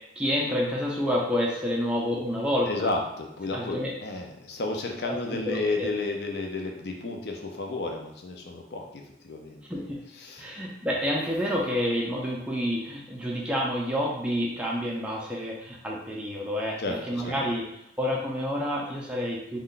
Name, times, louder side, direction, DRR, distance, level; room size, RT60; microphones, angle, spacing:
voice 1, 0.2-2.9 3.5-3.9 5.0-5.9 9.7-10.0 10.4-17.7 18.0-19.6, equal, 5° right, -3 dB, 0.4 m, -29 dB
voice 2, 2.7-9.8 10.1-10.6 16.8-17.4, left 2 dB, 60° left, 2 dB, 0.5 m, -32 dB
2.5 x 2.2 x 3.7 m, 0.78 s
head